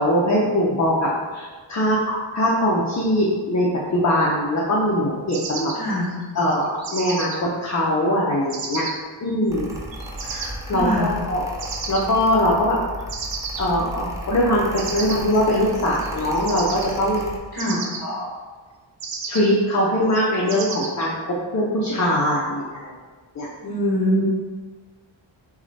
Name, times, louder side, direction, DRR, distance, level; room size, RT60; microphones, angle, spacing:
voice 1, 0.0-3.7 3.9-5.7 6.4-8.9 9.2-9.7 10.3-11.4 11.9-12.8 13.6-17.2 18.0-18.3 19.3-22.9 23.4-23.5, equal, 35° left, -5 dB, 0.6 m, -21 dB
sound 1, 5.3-7.4 8.5-8.9 9.7-10.5 11.6-12.2 13.1-13.6 14.7-17.2 17.6-18.0 19.0-19.6 20.1-21.1, right 5 dB, 65° right, 0.7 m, -33 dB
voice 2, 5.7-6.1 10.7-11.1 17.5-17.8 23.6-24.2, equal, 55° left, -4 dB, 1.1 m, -23 dB
Mechanical fan, 9.5-17.4, equal, 5° right, 0.5 m, -35 dB
6.0 x 2.2 x 4.1 m, 1.4 s
wide cardioid pair, 170°, 47 cm